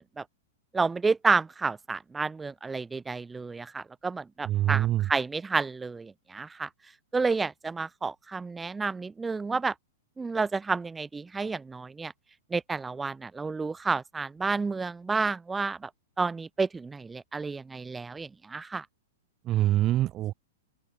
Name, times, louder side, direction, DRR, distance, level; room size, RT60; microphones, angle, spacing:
voice 1, 0.7-6.7 7.1-9.7 10.2-12.1 12.5-15.9 16.2-18.8, right 4 dB, 10° right, 1.1 m, -30 dB
voice 2, 4.4-5.1 19.5-20.3, right 14 dB, 30° right, 3.1 m, -25 dB
open air
figure-of-eight pair, 100°, 0 cm